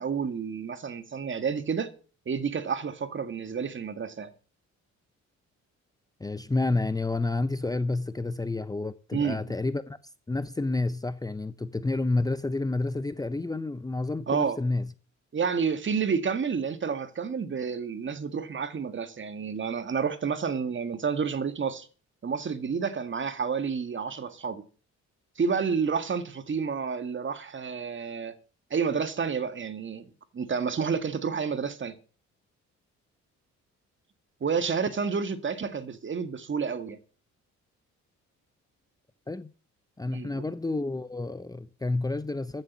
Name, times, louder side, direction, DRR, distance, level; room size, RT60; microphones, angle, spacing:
voice 1, 0.0-1.9 2.3-4.3 9.1-9.4 14.3-14.6 15.3-21.9 22.2-24.6 25.4-28.4 28.7-30.1 30.3-32.0 34.4-37.0 40.1-40.5, right 6 dB, 40° right, 1.9 m, -30 dB
voice 2, 6.2-10.0 10.3-14.9 39.3-39.5 40.0-42.6, left 2 dB, 10° left, 0.8 m, -29 dB
14.5 x 7.7 x 7.3 m
cardioid pair, 90°, 30 cm